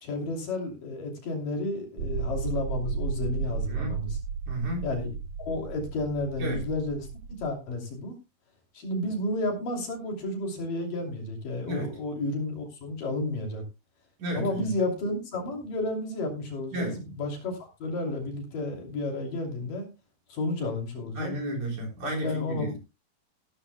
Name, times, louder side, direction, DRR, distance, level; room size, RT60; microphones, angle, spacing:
voice 1, 0.0-4.2 4.8-5.1 5.4-7.1 7.4-8.1 8.7-13.6 14.3-19.9 20.3-21.3 22.0-22.8, left 2 dB, 60° left, 4.4 m, -32 dB
sound 1, 2.0-7.5, right 5 dB, 70° right, 2.4 m, -34 dB
voice 2, 4.5-4.8 6.4-6.6 11.7-11.9 14.2-14.6 16.7-17.0 21.2-22.7, right 1 dB, 50° right, 5.4 m, -32 dB
16.0 x 13.5 x 2.2 m
omnidirectional pair, 4.6 m